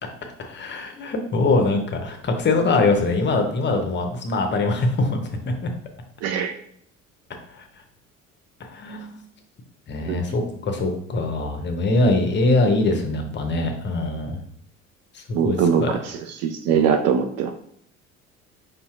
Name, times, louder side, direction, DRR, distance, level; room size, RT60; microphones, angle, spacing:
voice 1, 0.0-5.3 5.6-5.7 7.5-7.7 8.7-9.2 9.9-14.4 15.1-16.0, left 2 dB, 30° left, 4 dB, 0.8 m, -23 dB
voice 2, 6.2-6.5 10.1-10.2 15.3-16.0 16.4-17.5, right 7 dB, 40° right, 6 dB, 0.5 m, -21 dB
5.1 x 4.1 x 2.4 m, 0.67 s
figure-of-eight pair, 60°, 39 cm